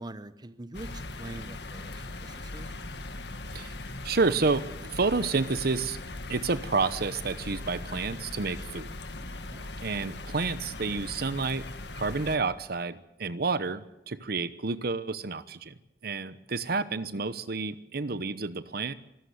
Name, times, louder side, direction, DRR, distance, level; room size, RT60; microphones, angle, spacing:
voice 1, 0.0-2.8 9.5-9.7, right 1 dB, 25° right, 13 dB, 1.0 m, -44 dB
sound 1, 0.7-12.4, left 2 dB, 70° left, 1.9 m, -40 dB
voice 2, 4.0-6.0 6.3-8.9 9.8-11.7 11.9-15.7 16.0-18.9, right 4 dB, 60° right, 14 dB, 0.9 m, -30 dB
25.0 x 13.5 x 9.5 m, 0.91 s
head